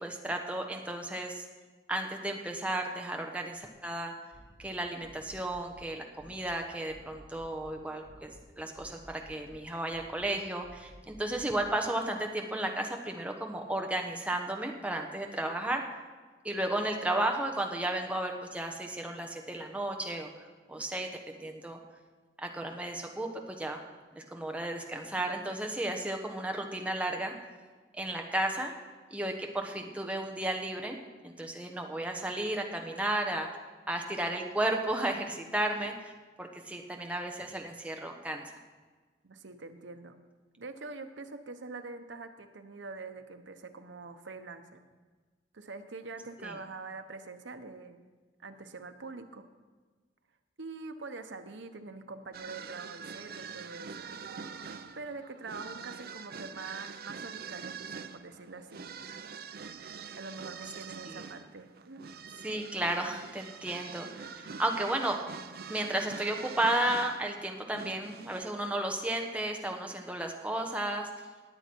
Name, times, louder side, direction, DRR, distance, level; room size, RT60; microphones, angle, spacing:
voice 1, 0.0-1.4 1.9-4.1 4.6-15.8 16.4-20.3 20.7-21.8 22.4-23.3 23.6-23.8 24.1-27.3 27.9-28.7 29.1-31.0 31.2-33.5 33.9-36.1 36.4-38.4 46.4-46.5 61.1-61.2 62.4-65.2 65.7-71.1, right 1 dB, 5° right, 2 dB, 1.1 m, -33 dB
sound 1, 4.3-4.7 5.0-5.9 6.2-6.6 6.9-7.8 8.1-8.5 8.8-9.6 9.9-10.3 10.6-11.7, equal, 50° left, 3.5 m, -54 dB
voice 2, 39.2-40.2 40.6-44.8 45.5-48.1 48.4-49.4 50.6-54.1 54.9-58.8 60.1-62.0, right 3 dB, 90° right, 8 dB, 0.9 m, -44 dB
sound 2, 52.3-68.5, right 6 dB, 55° right, 0.5 m, -44 dB
18.5 x 8.1 x 4.5 m, 1.4 s
head